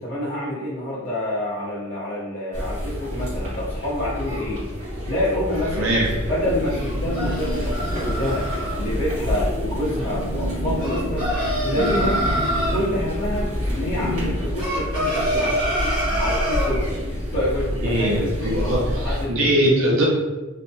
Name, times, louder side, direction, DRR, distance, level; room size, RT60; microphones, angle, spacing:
voice 1, 0.0-4.6 5.0-5.9 6.2-12.2 12.7-19.6, left 1 dB, 50° left, -9 dB, 0.7 m, -28 dB
sound 1, 2.5-19.2, equal, 90° right, 1.4 m, -28 dB
voice 2, 5.7-6.1 17.8-20.0, right 1 dB, 65° right, -3 dB, 0.5 m, -21 dB
sound 2, 6.4-14.3, equal, 20° left, 0.9 m, -32 dB
sound 3, 6.8-8.8 10.8-12.8 14.6-16.7, equal, 20° right, 1.1 m, -26 dB
3.2 x 2.1 x 2.6 m, 1.2 s
head